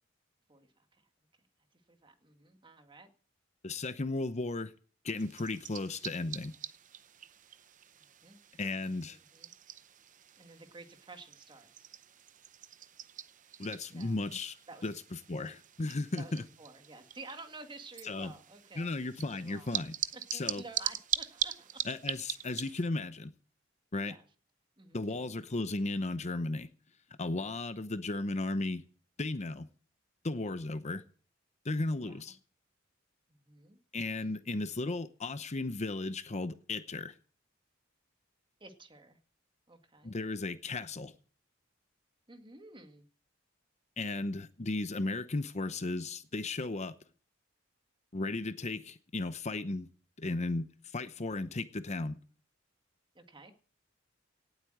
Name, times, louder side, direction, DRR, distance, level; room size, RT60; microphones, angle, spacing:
voice 1, 0.5-1.1 1.9-3.1 8.0-9.5 10.3-11.9 13.9-14.2 14.7-14.9 16.1-18.9 19.3-19.7 20.1-21.8 24.0-24.2 24.8-25.4 32.0-32.3 33.3-33.8 34.2-34.5 38.6-39.2 39.7-40.2 42.3-43.1 53.1-53.5, right 3 dB, 25° right, 1.9 m, -52 dB
voice 2, 3.6-4.7 5.0-6.5 8.6-9.2 13.6-14.5 14.8-14.9 15.3-16.4 18.0-18.3 18.8-20.0 20.3-20.6 21.8-23.3 23.9-24.2 24.9-26.7 27.2-28.8 29.2-29.7 30.2-31.0 31.6-32.4 33.9-37.1 40.0-41.1 44.0-46.9 48.1-49.9 50.2-52.2, left 2 dB, 35° left, 0.8 m, -35 dB
sound 1, 5.2-22.9, right 10 dB, 40° right, 0.7 m, -42 dB
18.0 x 8.2 x 7.7 m
head